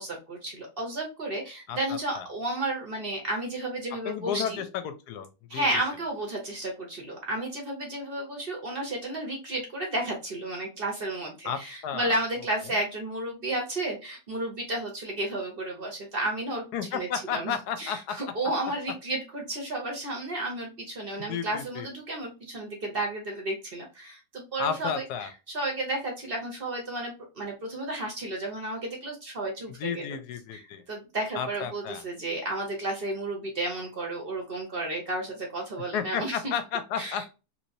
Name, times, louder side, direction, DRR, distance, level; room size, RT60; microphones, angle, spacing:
voice 1, 0.0-4.6 5.5-16.6 16.9-30.1 30.5-36.5 37.0-37.3, right 1 dB, 45° right, 1 dB, 0.7 m, -32 dB
voice 2, 4.0-5.7 11.4-12.2 16.7-18.2 21.3-21.9 24.6-25.3 29.8-30.8 31.3-32.0 35.9-37.3, left 8 dB, 70° left, 9 dB, 1.0 m, -32 dB
3.1 x 2.9 x 2.6 m, 0.29 s
omnidirectional pair, 1.9 m